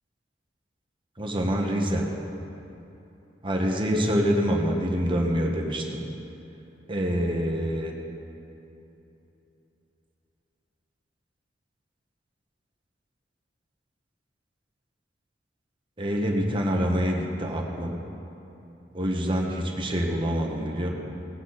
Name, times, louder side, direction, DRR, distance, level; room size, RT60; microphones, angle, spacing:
voice 1, 1.2-2.1 3.4-6.0 6.9-7.9 16.0-17.9 18.9-20.9, equal, 30° right, 0 dB, 1.3 m, -26 dB
18.0 x 8.6 x 4.1 m, 3.0 s
head